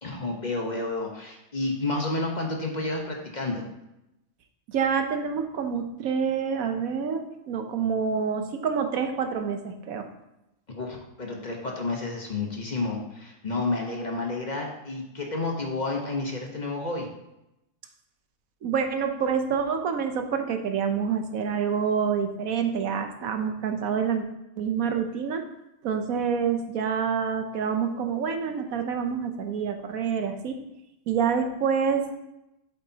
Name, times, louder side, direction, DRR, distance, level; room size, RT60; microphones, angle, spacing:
voice 1, 0.0-3.6 10.7-17.1, left 2 dB, 35° left, 0 dB, 1.2 m, -30 dB
voice 2, 4.7-10.1 18.6-24.2 24.6-25.4 25.8-30.6 31.1-32.1, right 6 dB, 85° right, 6 dB, 1.3 m, -27 dB
8.5 x 7.4 x 2.9 m, 0.89 s
omnidirectional pair, 1.4 m